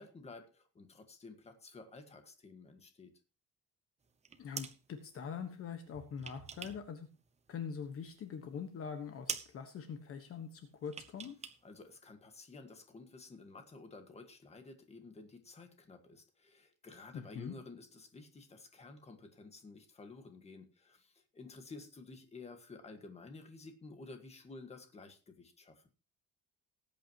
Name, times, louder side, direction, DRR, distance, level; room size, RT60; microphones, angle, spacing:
voice 1, 0.0-3.1 11.6-25.9, left 3 dB, 20° left, 7 dB, 1.6 m, -52 dB
sound 1, 4.1-4.8 5.8-6.9 7.2-8.1 8.5-8.6 8.9-9.0 9.3-9.6 10.9-11.6 11.9-12.0, right 5 dB, 20° right, 0.9 m, -44 dB
voice 2, 4.4-7.1 7.5-11.4 17.1-17.5, left 6 dB, 40° left, 7 dB, 1.3 m, -43 dB
19.0 x 8.8 x 3.0 m, 0.31 s
cardioid pair, 175°, 34 cm